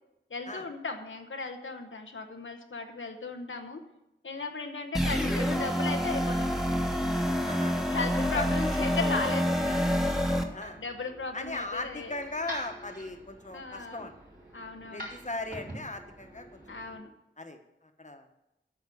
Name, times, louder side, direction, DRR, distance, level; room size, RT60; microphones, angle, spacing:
voice 1, 0.3-3.8 4.2-6.4 7.9-9.6 10.8-12.1 13.5-14.1 14.5-15.1 16.7-17.1, left 4 dB, 90° left, 3 dB, 0.9 m, -36 dB
sound 1, 4.9-10.4, equal, ahead, 1.4 m, -27 dB
sound 2, 6.4-17.0, equal, 50° right, 4.1 m, -48 dB
voice 2, 7.5-8.5 9.7-9.8 10.5-10.8 11.3-14.1 14.9-16.8 17.4-17.6 18.0-18.2, left 2 dB, 40° left, 5 dB, 1.2 m, -38 dB
8.8 x 6.1 x 8.3 m, 0.89 s
wide cardioid pair, 45°, 20 cm